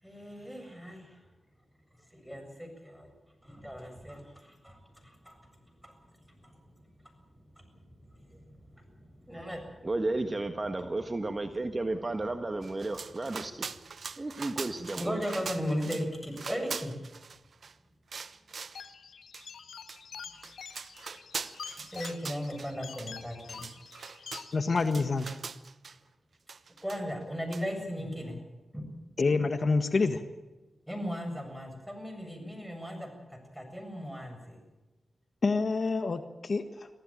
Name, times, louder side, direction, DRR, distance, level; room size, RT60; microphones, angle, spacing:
voice 1, 0.0-1.2 2.1-3.1 3.4-6.8 7.5-9.9 14.9-17.0 20.3-20.4 21.8-23.7 26.8-28.4 28.7-29.1 30.9-34.6, equal, ahead, 5 dB, 7.6 m, -38 dB
voice 2, 9.8-13.7 14.2-15.3, right 2 dB, 35° right, 7 dB, 1.5 m, -33 dB
sound 1, 12.6-16.1 16.3-17.7 18.1-18.8 19.3-19.4 19.9-20.0 20.3-22.7 23.0-23.1 23.4-26.0 26.5-27.2 27.5-27.6, right 5 dB, 65° right, 1.0 m, -42 dB
sound 2, 18.7-24.8, left 6 dB, 90° left, 1.6 m, -46 dB
voice 3, 24.5-25.4 29.2-30.2 35.4-36.9, left 4 dB, 55° left, 9 dB, 1.6 m, -27 dB
23.5 x 15.0 x 9.1 m, 1.1 s
cardioid pair, 65°, 0 cm